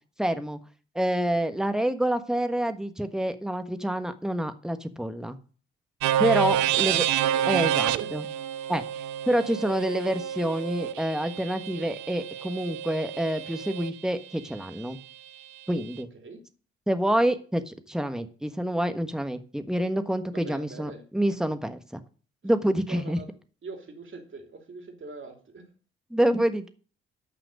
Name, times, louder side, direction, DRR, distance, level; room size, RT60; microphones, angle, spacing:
voice 1, 0.2-0.6 0.9-5.4 6.2-7.0 7.5-8.2 8.7-8.8 9.3-15.0 15.7-16.1 16.9-22.0 22.4-23.2 26.1-26.7, right 1 dB, ahead, 9 dB, 1.4 m, -27 dB
sound 1, 6.0-13.9, right 11 dB, 65° right, 0.6 m, -28 dB
voice 2, 16.0-16.4 20.3-21.0 22.8-23.3 23.6-25.7, right 3 dB, 40° right, 4 dB, 3.0 m, -43 dB
12.0 x 5.8 x 6.5 m, 0.40 s
figure-of-eight pair, 45°, 31 cm